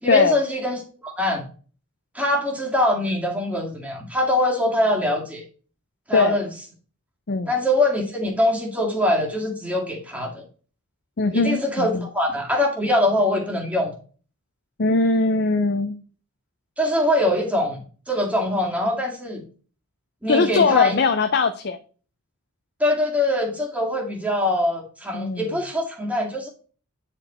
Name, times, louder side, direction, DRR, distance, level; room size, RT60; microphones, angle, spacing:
voice 1, 0.0-1.5 2.1-5.4 6.1-6.5 7.5-10.4 11.3-14.0 16.8-19.4 20.2-21.0 22.8-26.5, left 1 dB, 5° right, 0 dB, 1.9 m, -23 dB
voice 2, 11.2-12.1 14.8-16.0 20.3-21.8 25.1-25.5, left 3 dB, 50° left, 8 dB, 0.6 m, -20 dB
9.0 x 4.5 x 4.3 m, 0.39 s
head